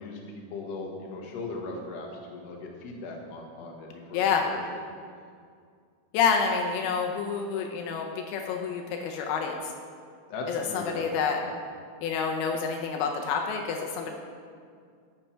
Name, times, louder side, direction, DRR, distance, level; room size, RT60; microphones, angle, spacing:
voice 1, 0.0-4.6 10.3-11.0 11.4-11.5, left 3 dB, 60° left, 0 dB, 1.9 m, -38 dB
voice 2, 4.1-4.4 6.1-9.5 10.5-11.4 12.0-14.1, left 6 dB, 90° left, 2 dB, 2.7 m, -28 dB
12.0 x 7.2 x 4.5 m, 2.2 s
omnidirectional pair, 4.4 m